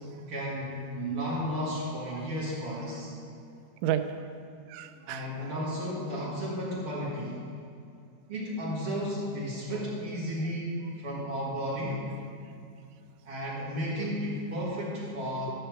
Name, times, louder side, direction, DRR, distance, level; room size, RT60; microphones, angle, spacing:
voice 1, 0.3-3.1 5.1-7.3 8.3-12.0 13.2-15.5, equal, 55° right, -7 dB, 1.5 m, -33 dB
voice 2, 3.5-4.3 4.7-5.3 6.2-6.3 9.5-9.6 12.4-12.5 14.0-14.1, right 10 dB, 90° right, 9 dB, 3.0 m, -34 dB
13.0 x 6.7 x 4.5 m, 2.5 s
omnidirectional pair, 5.4 m